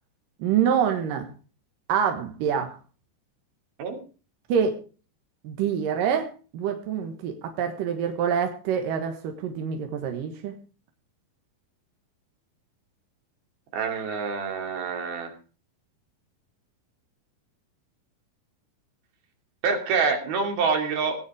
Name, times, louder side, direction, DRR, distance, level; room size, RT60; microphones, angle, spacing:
voice 1, 0.4-1.3 1.9-2.8 4.5-4.8 5.4-6.3 6.5-10.5, right 8 dB, 70° right, 5 dB, 3.1 m, -26 dB
voice 2, 13.7-15.3 19.6-21.2, right 5 dB, 85° right, 3 dB, 4.7 m, -26 dB
18.0 x 9.9 x 5.0 m, 0.37 s
omnidirectional pair, 4.2 m